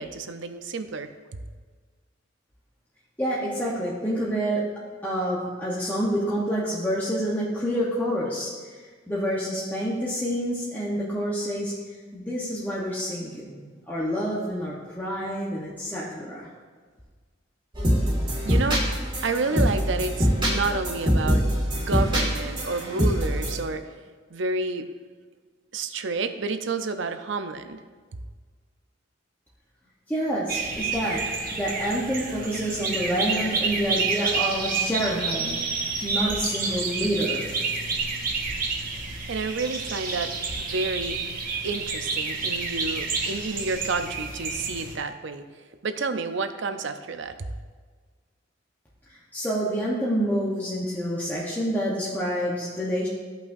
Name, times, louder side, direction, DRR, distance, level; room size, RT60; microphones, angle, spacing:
voice 1, 0.0-1.4 18.4-18.8 19.2-21.4 21.8-23.8 24.3-24.9 25.7-27.8 39.3-40.3 40.6-41.2 41.6-45.4 45.8-47.5, right 3 dB, 65° right, 9 dB, 0.6 m, -30 dB
voice 2, 3.2-4.6 5.0-8.8 9.1-11.7 12.1-16.5 30.1-31.2 31.5-37.4 49.1-53.1, equal, 10° left, -7 dB, 1.0 m, -28 dB
sound 1, 17.7-23.6, equal, 25° right, 2.0 m, -24 dB
sound 2, 30.5-44.9, right 4 dB, 50° right, 1.1 m, -29 dB
14.5 x 5.6 x 2.6 m, 1.5 s
head